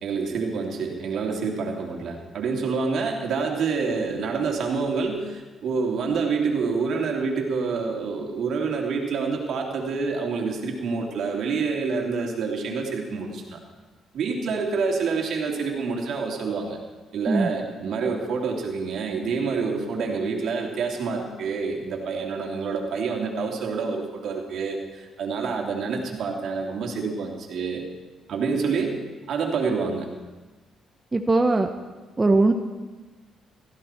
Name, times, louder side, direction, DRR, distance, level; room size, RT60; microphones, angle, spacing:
voice 1, 0.0-13.6 14.1-16.8 17.1-27.8 28.3-29.0 29.3-30.1, right 4 dB, 70° right, 1 dB, 2.8 m, -27 dB
voice 2, 31.1-31.7 32.2-32.5, right 3 dB, 25° right, 5 dB, 0.9 m, -19 dB
17.0 x 15.0 x 4.5 m, 1.2 s
cardioid pair, 90°, 0 cm